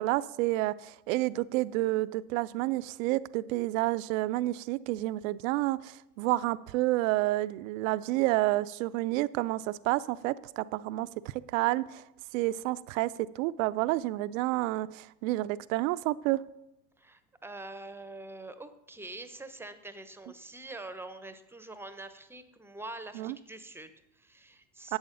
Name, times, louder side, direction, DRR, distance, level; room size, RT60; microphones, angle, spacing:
voice 1, 0.0-11.1 11.5-12.0 12.3-13.1 13.4-16.4 23.2-23.3 24.9-25.0, right 18 dB, 60° right, 16 dB, 0.6 m, -29 dB
voice 2, 17.0-25.0, right 2 dB, 5° right, 11 dB, 0.8 m, -45 dB
11.0 x 8.0 x 3.9 m, 0.90 s
hypercardioid pair, 85°, 47 cm